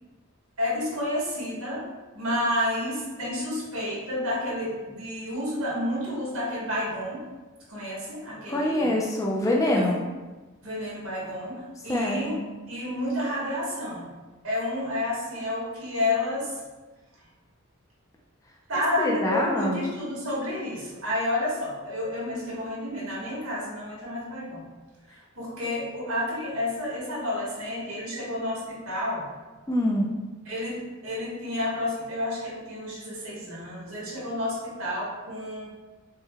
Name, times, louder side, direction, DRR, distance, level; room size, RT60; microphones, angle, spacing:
voice 1, 0.6-1.8 2.1-7.2 7.7-8.9 9.7-10.0 10.6-12.4 12.7-14.1 14.4-16.6 18.7-24.6 25.1-29.2 30.4-35.7, left 1 dB, 70° right, -5 dB, 1.4 m, -30 dB
voice 2, 8.5-10.0 11.9-12.4 19.0-19.8 29.7-30.1, left 1 dB, 15° left, -2 dB, 0.4 m, -25 dB
4.5 x 2.1 x 3.3 m, 1.2 s
head